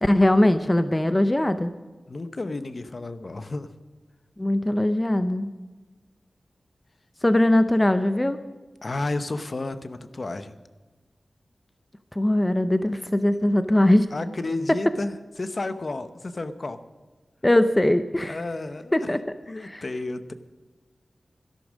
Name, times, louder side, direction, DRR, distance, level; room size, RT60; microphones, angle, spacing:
voice 1, 0.0-1.7 4.4-5.5 7.2-8.4 12.1-14.1 17.4-18.4 18.9-19.2 19.6-19.9, left 1 dB, 15° left, 10 dB, 0.6 m, -21 dB
voice 2, 2.1-3.7 8.8-10.5 14.1-16.8 18.3-19.1 19.5-20.3, left 2 dB, 45° left, 11 dB, 0.9 m, -32 dB
13.0 x 11.5 x 6.2 m, 1.3 s
wide cardioid pair, 105°, 0 cm